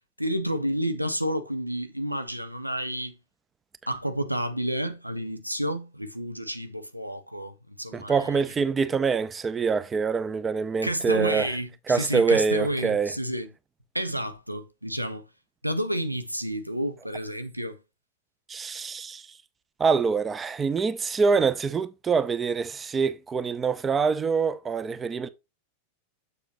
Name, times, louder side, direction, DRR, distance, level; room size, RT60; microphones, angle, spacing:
voice 1, 0.2-3.1 3.9-8.4 10.8-13.5 13.9-15.2 15.6-17.8, equal, 90° right, 0.8 m, -30 dB
voice 2, 7.9-11.5 11.9-13.1 18.5-19.3 19.8-25.3, right 5 dB, 20° right, 0.6 m, -25 dB
7.1 x 6.7 x 2.9 m
figure-of-eight pair, 90°, 0 cm